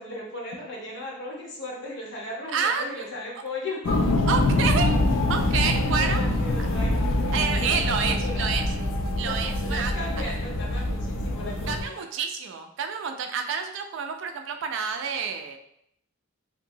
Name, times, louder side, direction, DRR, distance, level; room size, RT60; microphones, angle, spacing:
voice 1, 0.0-4.1 5.9-8.4 9.2-12.0, left 1 dB, 60° left, -3 dB, 0.8 m, -37 dB
voice 2, 2.5-3.1 4.3-4.9 5.3-6.2 7.3-8.7 9.2-9.9 11.7-15.6, right 6 dB, 65° right, 6 dB, 0.3 m, -28 dB
sound 1, 3.8-11.8, left 1 dB, 85° left, 0.4 m, -25 dB
2.8 x 2.6 x 2.6 m, 0.74 s
head